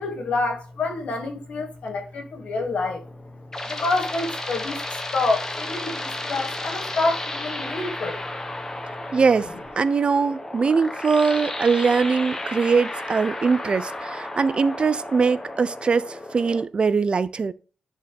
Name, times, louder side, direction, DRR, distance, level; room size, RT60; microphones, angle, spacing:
voice 1, 0.0-3.0 3.7-4.8 5.1-8.2, left 3 dB, 75° left, 2.4 m, -27 dB
sound 1, 3.0-16.6, left 1 dB, 25° left, 1.5 m, -33 dB
voice 2, 9.1-9.5 9.8-17.5, right 5 dB, 50° right, 0.5 m, -21 dB
10.0 x 4.2 x 3.5 m
cardioid pair, 70°, 2 cm